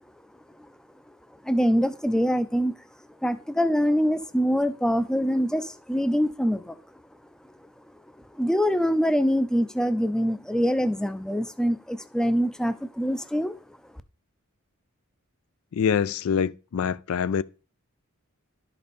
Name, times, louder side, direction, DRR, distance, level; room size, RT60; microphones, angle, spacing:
voice 1, 1.4-2.7 3.2-6.8 8.3-13.6, equal, 5° left, 0.5 m, -24 dB
voice 2, 15.7-17.4, left 7 dB, 70° left, 0.4 m, -25 dB
11.5 x 5.3 x 4.2 m
head